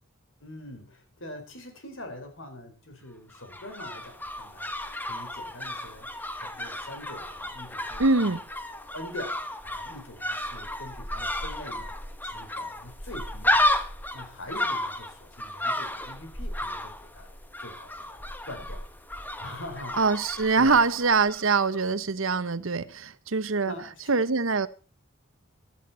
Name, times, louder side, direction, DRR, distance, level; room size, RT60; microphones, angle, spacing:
voice 1, 0.4-4.7 5.0-6.1 6.3-8.4 8.9-9.4 9.6-11.9 12.2-13.8 14.1-17.3 17.6-18.8 19.4-20.0 20.5-20.8 23.6-24.2, left 1 dB, 70° left, 4.6 m, -43 dB
sound 1, 3.3-21.5 21.7-21.8, left 1 dB, 10° left, 1.3 m, -33 dB
voice 2, 8.0-8.4 20.0-23.7 24.1-24.7, right 4 dB, 80° right, 1.0 m, -23 dB
15.5 x 13.0 x 4.3 m
head